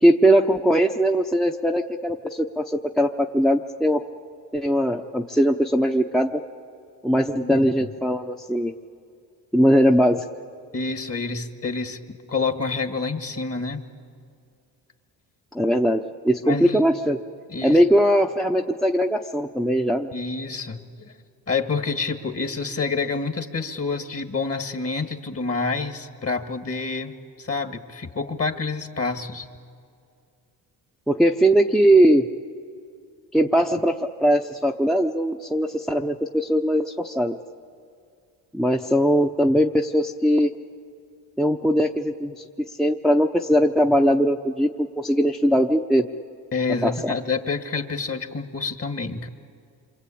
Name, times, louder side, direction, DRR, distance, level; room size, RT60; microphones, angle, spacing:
voice 1, 0.0-4.0 4.5-6.4 7.0-8.7 9.5-10.2 15.5-17.2 17.6-20.1 31.1-32.3 33.3-37.3 38.5-40.5 41.4-42.4 42.8-46.1 46.8-47.1, equal, ahead, 3 dB, 0.9 m, -20 dB
voice 2, 7.4-7.9 10.7-12.0 12.3-13.8 16.5-16.8 17.5-17.8 20.1-21.1 21.5-27.1 27.4-29.5 46.5-49.3, left 4 dB, 35° left, 7 dB, 1.9 m, -28 dB
27.0 x 24.5 x 8.6 m, 2.3 s
cardioid pair, 75°, 40 cm